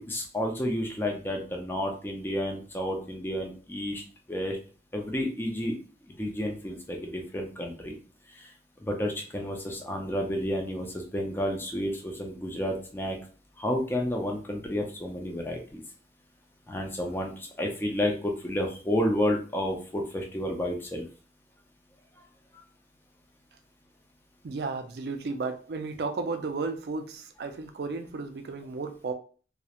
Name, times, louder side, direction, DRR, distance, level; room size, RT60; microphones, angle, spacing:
voice 1, 0.0-4.0 4.3-4.6 4.9-5.7 6.1-8.0 8.3-8.5 8.8-13.2 13.6-15.8 16.7-21.1, left 1 dB, 10° left, 0.4 m, -31 dB
voice 2, 24.4-29.1, right 4 dB, 65° right, 0.4 m, -33 dB
2.3 x 2.0 x 2.8 m
head